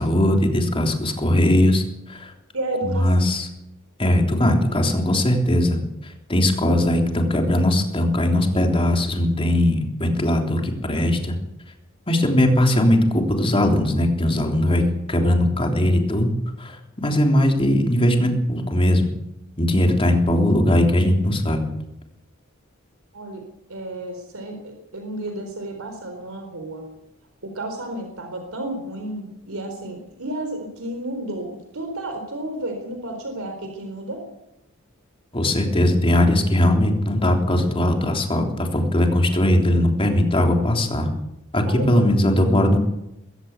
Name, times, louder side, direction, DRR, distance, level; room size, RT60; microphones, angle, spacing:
voice 1, 0.0-2.3 2.8-3.5 4.0-5.8 6.0-11.4 12.1-14.8 15.1-16.3 16.6-19.1 19.6-21.6 35.3-41.1 41.5-42.8, left 1 dB, 25° left, 3 dB, 3.5 m, -19 dB
voice 2, 2.5-3.3 6.7-6.9 23.1-23.4 23.7-26.9 27.4-34.2 41.7-42.2, right 1 dB, 75° right, 5 dB, 4.1 m, -32 dB
22.5 x 15.0 x 8.2 m, 0.87 s
head